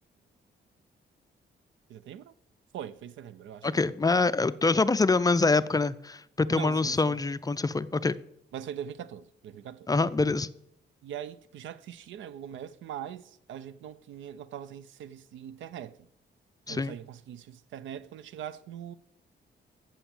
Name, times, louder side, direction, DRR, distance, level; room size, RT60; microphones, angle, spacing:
voice 1, 1.9-2.3 2.7-3.7 6.5-7.2 8.5-9.9 11.0-16.1 16.7-18.9, right 9 dB, 85° right, 0.5 m, -41 dB
voice 2, 3.6-8.1 9.9-10.5 16.7-17.0, left 3 dB, 20° left, 0.4 m, -25 dB
8.7 x 7.0 x 7.1 m
cardioid pair, 95°, 19 cm